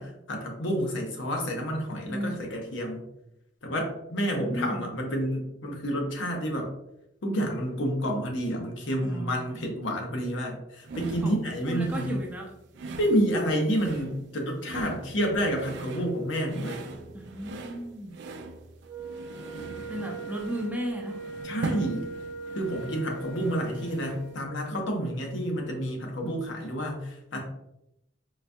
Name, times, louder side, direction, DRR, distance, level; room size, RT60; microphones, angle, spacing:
voice 1, 0.0-3.1 3.6-6.7 7.2-12.1 13.0-16.8 21.4-22.1 22.6-27.4, equal, 75° left, 1 dB, 0.7 m, -29 dB
voice 2, 2.1-2.4 4.2-4.9 9.0-9.5 11.2-12.5 17.1-18.1 19.9-21.2 27.3-27.4, equal, 10° right, -1 dB, 0.5 m, -35 dB
sound 1, 10.9-24.3, right 3 dB, 65° right, 0.4 m, -41 dB
Wind instrument woodwind instrument, 18.8-24.5, right 3 dB, 25° right, 1.0 m, -40 dB
3.9 x 2.2 x 2.5 m, 0.84 s
head